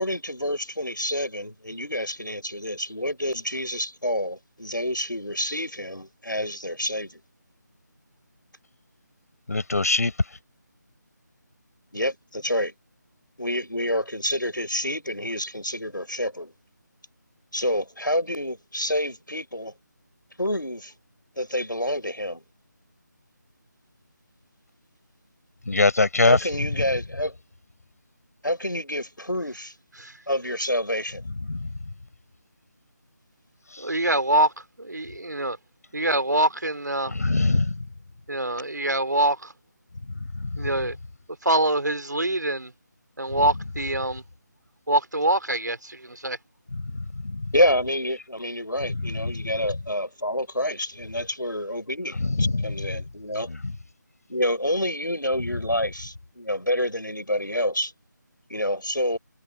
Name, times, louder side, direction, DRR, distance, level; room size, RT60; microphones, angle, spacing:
voice 1, 0.0-7.2 11.9-12.7 13.4-16.5 17.5-19.7 20.4-20.9 21.4-22.4 26.2-27.3 28.4-29.7 30.3-31.2 47.5-53.5 54.3-57.9 58.5-59.2, left 1 dB, 90° left, 5.0 m, -28 dB
voice 2, 9.5-10.1 25.7-26.4 31.5-31.7 37.1-37.8 40.4-40.6 46.7-47.4 49.0-49.4 52.2-52.6 53.5-53.7, left 3 dB, 55° left, 5.6 m, -23 dB
voice 3, 33.8-34.5 34.8-35.6 35.9-37.1 38.3-39.5 40.6-41.0 41.4-42.7 43.2-44.2 44.9-46.4, right 1 dB, 70° right, 3.6 m, -24 dB
figure-of-eight pair, 160°, 10 cm